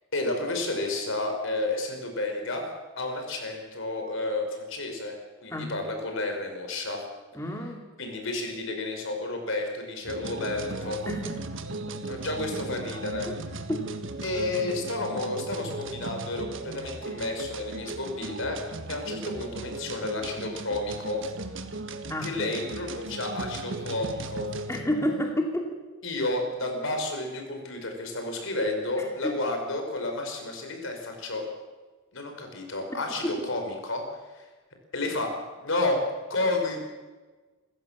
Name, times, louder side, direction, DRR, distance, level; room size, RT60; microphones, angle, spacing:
voice 1, 0.1-2.7 3.0-7.0 8.0-11.0 12.1-13.3 14.2-18.6 18.9-21.2 22.2-24.5 26.0-31.5 32.1-34.0 34.3-34.4 34.9-35.3 35.6-36.0 36.3-36.8, left 2 dB, 65° left, 4 dB, 5.1 m, -31 dB
voice 2, 7.4-7.8 11.1-11.4 13.3-13.4 13.7-13.8 22.1-22.3 24.7-25.6 29.0-29.3, equal, 15° left, 1 dB, 2.5 m, -29 dB
sound 1, 10.1-24.9, right 2 dB, 65° right, 1.7 m, -37 dB
27.5 x 15.0 x 7.4 m, 1.3 s
head